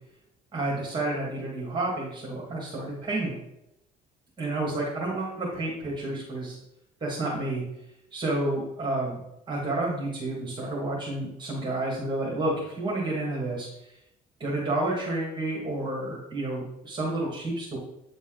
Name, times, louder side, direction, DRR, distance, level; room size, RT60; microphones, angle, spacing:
voice 1, 0.5-3.4 4.4-6.6 7.0-7.6 8.1-9.2 9.5-13.7 14.4-17.8, right 2 dB, 25° right, -4 dB, 2.1 m, -30 dB
8.9 x 4.0 x 3.9 m, 0.84 s
cardioid pair, 110°, 17 cm